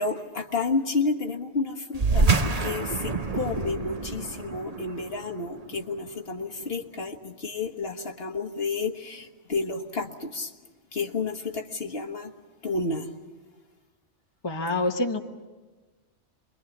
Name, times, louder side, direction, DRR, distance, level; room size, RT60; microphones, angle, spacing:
voice 1, 0.0-10.5 10.9-12.3 12.6-13.1, left 3 dB, 55° left, 4 dB, 1.6 m, -31 dB
sound 1, 1.9-6.8, right 3 dB, 35° right, 1.1 m, -27 dB
voice 2, 14.4-15.2, left 2 dB, 20° left, 3 dB, 1.2 m, -26 dB
28.0 x 22.5 x 7.3 m, 1.3 s
omnidirectional pair, 1.2 m